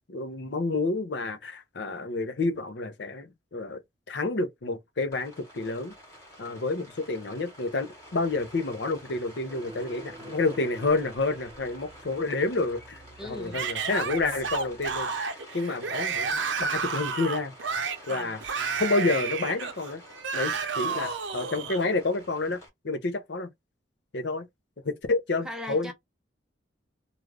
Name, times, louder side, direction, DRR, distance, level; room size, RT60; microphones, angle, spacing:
voice 1, 0.1-3.8 4.1-5.9 6.4-17.5 18.1-20.0 20.3-22.6 22.8-23.5 24.1-24.5 24.8-25.9, left 3 dB, 65° left, 0.6 m, -29 dB
Rain, 5.1-22.7, equal, 15° left, 1.0 m, -50 dB
sound 1, 9.5-15.0, right 1 dB, 30° right, 0.9 m, -48 dB
voice 2, 13.2-13.6 18.1-18.4 25.4-25.9, left 1 dB, 5° right, 0.5 m, -39 dB
Yell / Screaming, 13.5-21.8, right 5 dB, 75° right, 0.7 m, -31 dB
2.5 x 2.3 x 3.2 m
head